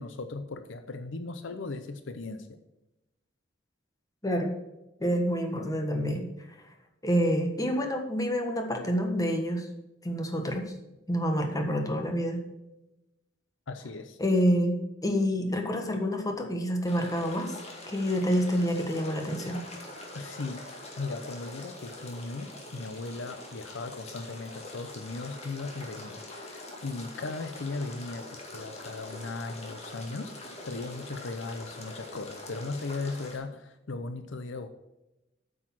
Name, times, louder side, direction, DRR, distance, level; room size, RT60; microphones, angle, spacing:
voice 1, 0.0-2.6 13.7-14.2 20.1-20.7 21.0-34.7, left 3 dB, 70° left, 9 dB, 0.7 m, -37 dB
voice 2, 4.2-4.5 5.0-6.3 7.0-9.7 10.0-10.7 11.1-12.4 14.2-17.6 17.9-19.6, equal, 20° left, 3 dB, 1.4 m, -28 dB
sound 1, 16.9-33.4, left 2 dB, 35° left, 2.1 m, -44 dB
8.8 x 6.4 x 6.1 m, 0.95 s
head